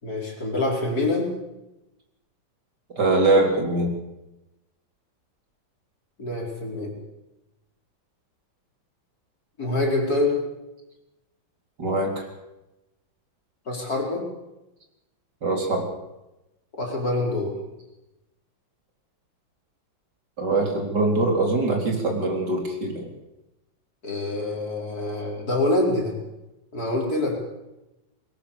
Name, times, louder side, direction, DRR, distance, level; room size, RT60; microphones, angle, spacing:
voice 1, 0.0-1.3 6.2-6.9 9.6-10.4 13.7-14.2 16.7-17.5 24.0-26.1 26.7-27.3, left 2 dB, 50° left, 0 dB, 5.2 m, -25 dB
voice 2, 3.0-3.9 11.8-12.3 15.4-15.9 20.4-23.1, right 2 dB, 55° right, 2 dB, 4.5 m, -23 dB
21.0 x 18.5 x 7.1 m, 0.96 s
omnidirectional pair, 2.2 m